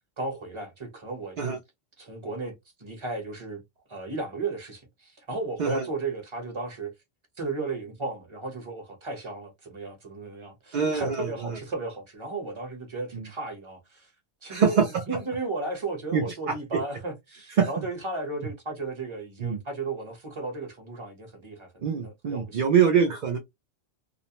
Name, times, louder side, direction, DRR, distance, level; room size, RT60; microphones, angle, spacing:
voice 1, 0.2-1.6 2.0-3.6 3.9-6.9 7.4-14.1 14.4-14.8 15.1-22.6, right 3 dB, 30° right, 0.9 m, -35 dB
voice 2, 10.7-11.3 13.1-13.2 14.5-15.0 16.1-16.5 17.6-17.7 19.4-19.6 21.8-23.4, right 6 dB, 55° right, 0.6 m, -24 dB
2.4 x 2.1 x 2.8 m
omnidirectional pair, 1.1 m